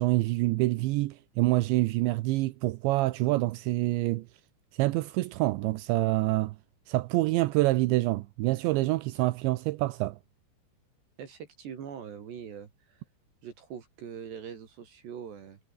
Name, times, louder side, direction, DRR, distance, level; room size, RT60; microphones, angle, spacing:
voice 1, 0.0-4.3 4.8-6.6 6.9-10.2, right 19 dB, 80° right, 3.0 m, -26 dB
voice 2, 11.2-13.0 13.4-15.6, right 8 dB, 65° right, 5.2 m, -42 dB
omnidirectional pair, 5.4 m